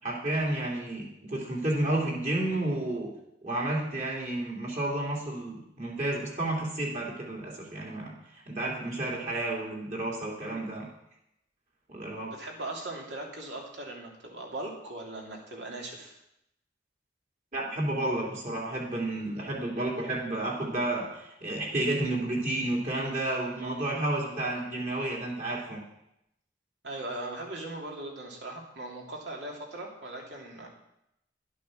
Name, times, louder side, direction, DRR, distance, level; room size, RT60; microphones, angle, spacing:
voice 1, 0.0-3.1 3.4-8.1 8.5-10.8 11.9-12.3 17.5-25.8, right 1 dB, 40° right, -3 dB, 3.0 m, -31 dB
voice 2, 12.3-16.2 26.8-30.7, right 2 dB, 70° right, -1 dB, 2.8 m, -39 dB
11.5 x 8.5 x 6.3 m, 0.81 s
head